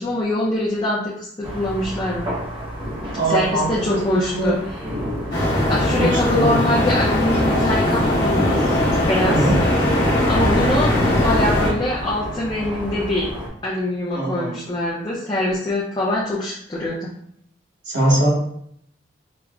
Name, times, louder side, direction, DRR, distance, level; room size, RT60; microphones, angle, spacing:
voice 1, 0.0-2.3 3.3-4.5 5.7-9.6 10.3-13.3 13.6-17.1, left 1 dB, 20° left, -6 dB, 0.5 m, -24 dB
sound 1, 1.4-13.5, equal, 25° right, 0.7 m, -30 dB
voice 2, 3.1-4.6 6.0-6.6 9.3-9.6 14.1-14.6 17.8-18.3, right 1 dB, 70° right, -6 dB, 1.3 m, -21 dB
sound 2, 5.3-11.7, left 1 dB, 60° left, 1.2 m, -20 dB
4.8 x 2.1 x 2.3 m, 0.68 s
head